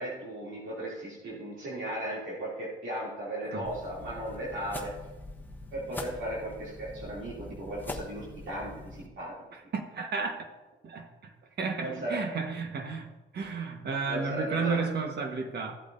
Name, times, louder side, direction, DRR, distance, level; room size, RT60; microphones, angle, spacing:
voice 1, 0.0-4.9 5.7-9.3 11.8-12.2 14.1-14.8, right 1 dB, 75° right, 2.9 m, -36 dB
sound 1, 3.6-9.1, left 2 dB, 10° left, 1.2 m, -43 dB
voice 2, 9.5-10.4 10.8-15.7, right 4 dB, 55° right, 1.4 m, -33 dB
15.5 x 8.1 x 2.7 m
cardioid pair, 90°, 20 cm